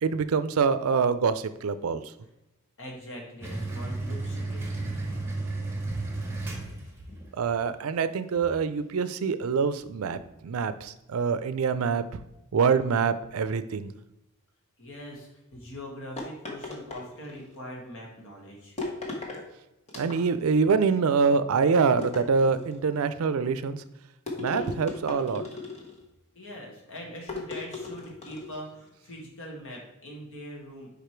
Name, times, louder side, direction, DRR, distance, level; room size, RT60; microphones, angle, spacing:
voice 1, 0.0-2.0 7.4-12.0 12.5-13.9 20.0-23.8 24.4-25.5, right 5 dB, 75° right, 13 dB, 0.4 m, -25 dB
voice 2, 2.8-4.9 6.6-6.7 14.8-18.8 26.4-30.9, equal, 65° left, -1 dB, 1.9 m, -42 dB
sound 1, 3.4-7.2, right 2 dB, 10° right, 1.3 m, -33 dB
sound 2, 16.2-17.5 18.8-19.4 19.9-20.6 22.0-22.9 24.3-26.0 27.3-28.6, left 2 dB, 30° left, 1.3 m, -37 dB
5.1 x 5.0 x 4.5 m, 0.91 s
head